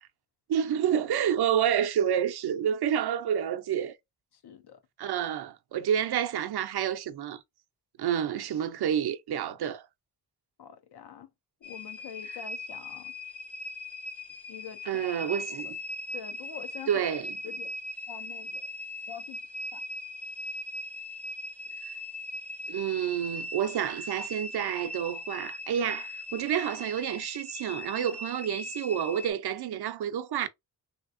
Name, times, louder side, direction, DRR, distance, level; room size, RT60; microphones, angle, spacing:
voice 1, 0.5-3.9 5.0-7.4 8.0-9.9 14.9-15.8 16.9-17.4 22.7-30.5, right 9 dB, 80° right, 0.5 m, -29 dB
voice 2, 4.4-4.8 10.6-11.3 11.6-13.1 14.5-15.1 15.5-15.7 16.1-17.1 17.4-17.7 18.1-18.7 19.1-19.4 19.7-19.8, left 8 dB, 90° left, 0.7 m, -45 dB
sound 1, 11.6-29.3, left 1 dB, 5° left, 0.5 m, -39 dB
3.4 x 2.8 x 2.5 m
wide cardioid pair, 100°, 38 cm